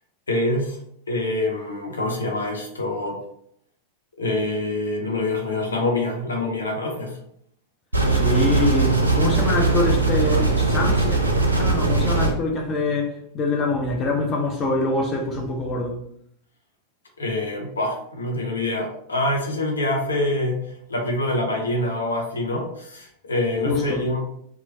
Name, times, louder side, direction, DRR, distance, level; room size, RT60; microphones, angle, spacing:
voice 1, 0.3-0.8 1.1-3.2 4.2-7.2 17.2-24.3, left 2 dB, 75° left, 0.6 m, -25 dB
sound 1, 7.9-12.3, right 3 dB, 80° right, 0.5 m, -20 dB
voice 2, 8.1-11.2 11.6-16.0 23.7-24.1, left 2 dB, 30° left, 0.5 m, -25 dB
3.0 x 2.3 x 2.7 m
figure-of-eight pair, 90°, 0 cm